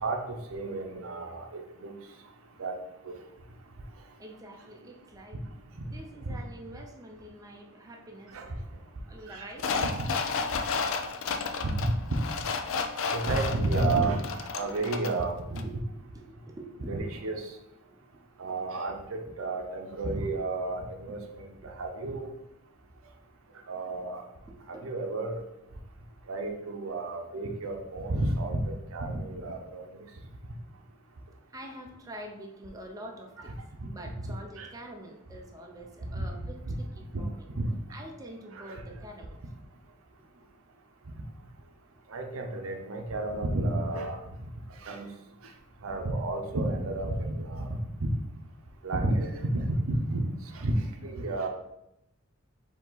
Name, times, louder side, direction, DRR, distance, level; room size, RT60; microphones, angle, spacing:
voice 1, 0.0-1.9 2.6-2.7 8.3-8.5 9.3-9.5 10.0-10.1 11.6-11.9 13.1-15.6 16.9-17.4 18.4-22.3 23.7-24.2 24.7-25.4 26.3-28.6 28.9-29.9 34.6-34.7 36.0-36.3 36.7-36.8 37.1-37.2 37.6-37.7 38.6-38.8 42.1-44.2 44.8-45.1 45.8-48.1 48.8-50.2 50.6-50.7 51.0-51.5, right 2 dB, 80° right, 4 dB, 0.6 m, -31 dB
voice 2, 4.2-5.4 5.8-8.4 9.1-9.7 15.5-17.5 17.8-18.5 19.3-19.4 21.6-21.7 24.5-24.8 31.5-33.6 33.9-37.5 37.9-39.4, right 1 dB, 15° right, 1 dB, 0.5 m, -46 dB
sound 1, 9.6-15.2 15.6-15.7, left 5 dB, 70° left, 0.4 m, -32 dB
4.7 x 2.8 x 3.9 m, 0.87 s
head